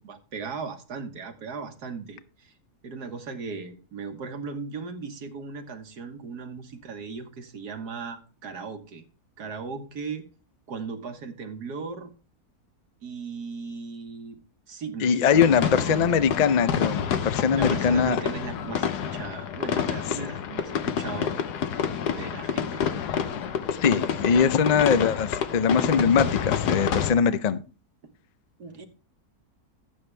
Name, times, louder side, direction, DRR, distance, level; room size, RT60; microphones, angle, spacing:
voice 1, 0.0-2.5 2.8-9.0 9.4-10.2 10.7-12.1 13.0-14.4 14.7-16.0 17.5-21.4 22.2-22.8 28.6-28.9, right 4 dB, 80° right, 1.8 m, -37 dB
voice 2, 15.0-18.2 23.7-27.6, left 6 dB, 70° left, 0.4 m, -22 dB
sound 1, 15.3-27.1, left 8 dB, 90° left, 1.4 m, -28 dB
12.0 x 8.6 x 3.3 m
omnidirectional pair, 1.7 m